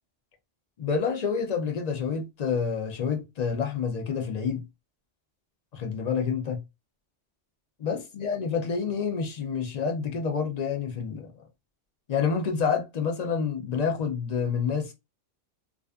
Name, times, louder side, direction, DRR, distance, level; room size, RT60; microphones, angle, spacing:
voice 1, 0.8-4.7 5.7-6.6 7.8-11.3 12.1-14.9, left 6 dB, 50° left, 0.5 m, -28 dB
2.4 x 2.4 x 2.2 m
omnidirectional pair, 1.3 m